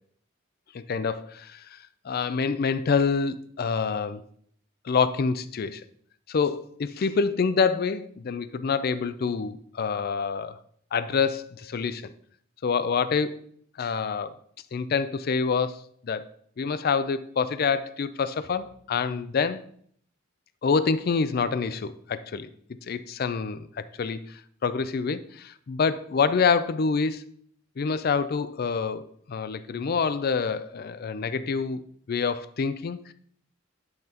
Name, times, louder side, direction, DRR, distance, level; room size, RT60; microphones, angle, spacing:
voice 1, 0.7-1.8 2.0-4.2 4.8-5.8 6.3-10.6 10.9-12.1 12.6-13.4 13.8-14.3 14.7-16.2 16.6-19.6 20.6-22.5 22.9-27.2 27.8-33.1, left 5 dB, 50° left, 14 dB, 0.4 m, -27 dB
10.5 x 5.7 x 2.9 m, 0.62 s
head